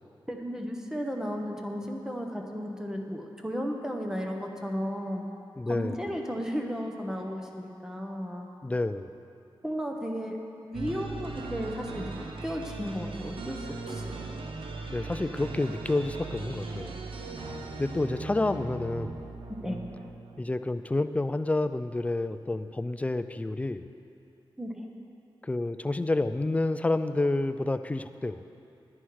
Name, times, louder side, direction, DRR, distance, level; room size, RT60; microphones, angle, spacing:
voice 1, 0.3-5.3 5.7-8.5 9.6-10.4 10.6-12.1 12.4-14.1 19.6-19.8 24.6-24.9, equal, 5° right, 1 dB, 0.9 m, -34 dB
voice 2, 5.6-6.0 8.6-9.1 14.9-17.0 17.8-19.3 20.4-23.9 25.4-28.4, left 2 dB, 15° left, 11 dB, 0.3 m, -29 dB
sound 1, 10.7-20.6, right 3 dB, 75° right, 0.8 m, -39 dB
9.8 x 9.7 x 4.7 m, 2.6 s
wide cardioid pair, 100°, 9 cm